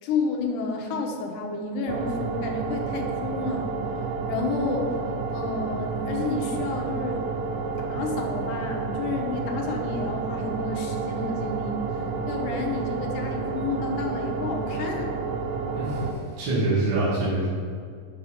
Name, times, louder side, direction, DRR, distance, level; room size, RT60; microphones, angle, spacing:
voice 1, 0.0-3.7 4.3-5.0 5.3-7.2 7.8-11.8 12.3-15.1, left 4 dB, 85° left, 2 dB, 2.5 m, -30 dB
sound 1, 1.9-16.1, right 4 dB, 80° right, 2.0 m, -30 dB
voice 2, 15.7-17.5, right 2 dB, 45° right, -9 dB, 2.2 m, -25 dB
7.9 x 4.9 x 5.6 m, 2.2 s
omnidirectional pair, 3.5 m